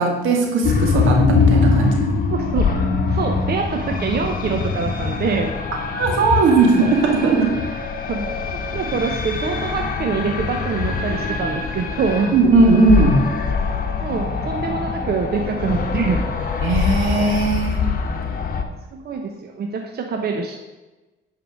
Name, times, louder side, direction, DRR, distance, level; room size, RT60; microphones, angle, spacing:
voice 1, 0.0-2.0 5.9-7.6 12.3-13.3 16.6-17.9, right 3 dB, 80° right, 2 dB, 2.0 m, -17 dB
sound 1, 0.6-18.6, left 5 dB, 45° left, 1.2 m, -23 dB
voice 2, 2.3-5.5 8.1-12.3 14.0-16.3 18.9-20.6, right 5 dB, 55° right, 3 dB, 1.0 m, -25 dB
9.4 x 4.9 x 6.2 m, 1.2 s
cardioid pair, 90°, 20 cm